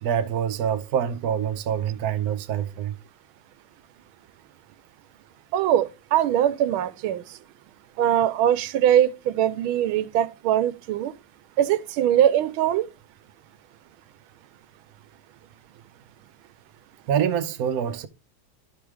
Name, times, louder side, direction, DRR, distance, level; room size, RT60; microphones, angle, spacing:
voice 1, 0.0-3.0 17.1-18.1, right 8 dB, 60° right, 1.1 m, -25 dB
voice 2, 5.5-7.2 8.0-11.1 11.6-12.9, right 11 dB, 90° right, 1.5 m, -22 dB
11.5 x 6.1 x 3.3 m
omnidirectional pair, 2.2 m